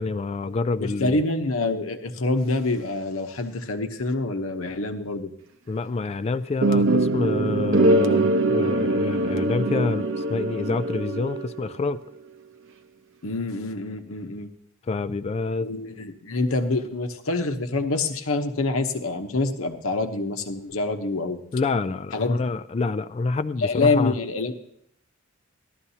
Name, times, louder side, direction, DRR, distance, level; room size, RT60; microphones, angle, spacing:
voice 1, 0.0-1.2 5.7-12.0 14.9-15.7 21.5-24.1, left 3 dB, 30° left, 12 dB, 0.3 m, -27 dB
voice 2, 0.8-5.3 13.2-14.5 15.6-21.4 22.1-22.4 23.6-24.5, left 3 dB, 80° left, 6 dB, 1.0 m, -26 dB
sound 1, 6.6-11.7, right 2 dB, 60° right, 0.7 m, -22 dB
14.5 x 12.0 x 2.8 m, 0.70 s
head